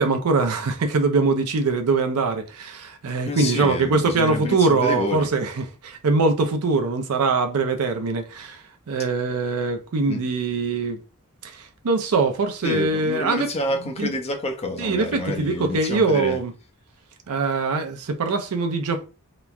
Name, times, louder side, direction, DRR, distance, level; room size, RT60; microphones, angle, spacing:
voice 1, 0.0-11.0 11.4-13.5 14.0-14.1 14.8-16.5 17.3-19.0, right 3 dB, 90° right, 0.5 m, -23 dB
voice 2, 3.2-5.3 10.1-10.2 12.6-16.4, left 1 dB, 30° left, 0.5 m, -28 dB
2.9 x 2.2 x 2.4 m
head